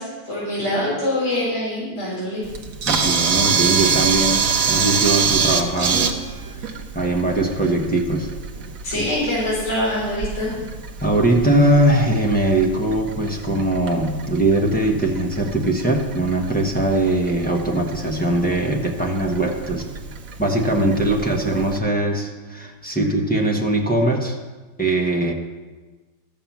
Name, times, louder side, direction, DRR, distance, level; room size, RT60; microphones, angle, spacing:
voice 1, 0.0-2.4 8.8-10.5, left 1 dB, 35° left, -9 dB, 4.4 m, -24 dB
Camera, 2.4-21.8, right 6 dB, 50° right, 1.1 m, -26 dB
voice 2, 2.9-6.1 6.6-8.3 8.9-9.0 11.0-19.8 20.4-24.4 24.8-25.3, right 1 dB, 10° left, 0 dB, 0.6 m, -21 dB
13.0 x 6.8 x 7.2 m, 1.3 s
omnidirectional pair, 2.4 m